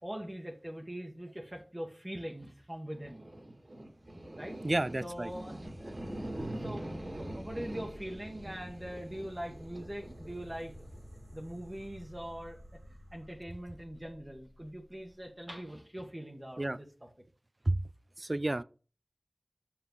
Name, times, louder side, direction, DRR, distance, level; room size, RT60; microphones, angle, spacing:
voice 1, 0.0-3.3 4.3-4.6 5.0-10.7 11.3-12.6 12.9-16.9, equal, 25° right, 1.3 m, -42 dB
sound 1, 2.9-13.3, right 1 dB, 65° right, 2.4 m, -44 dB
voice 2, 4.6-5.3 16.6-16.8 17.7-17.8 18.2-18.6, right 2 dB, 40° right, 0.4 m, -30 dB
sound 2, 7.4-15.6, equal, 25° left, 1.4 m, -57 dB
7.2 x 6.3 x 3.9 m
wide cardioid pair, 50°, 0 cm